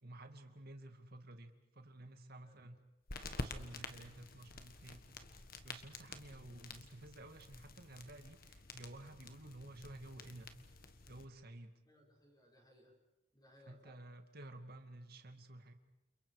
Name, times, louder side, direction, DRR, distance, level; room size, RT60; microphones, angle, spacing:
voice 1, 0.0-2.8 3.2-5.0 5.6-10.5 11.1-11.8 13.7-15.7, right 1 dB, 50° right, 6 dB, 2.3 m, -53 dB
voice 2, 2.4-2.8 11.9-13.0 13.3-14.0, equal, 20° left, -1 dB, 6.0 m, -65 dB
sound 1, 3.1-11.2, left 3 dB, 50° left, 1.7 m, -50 dB
29.5 x 28.5 x 5.1 m, 0.95 s
head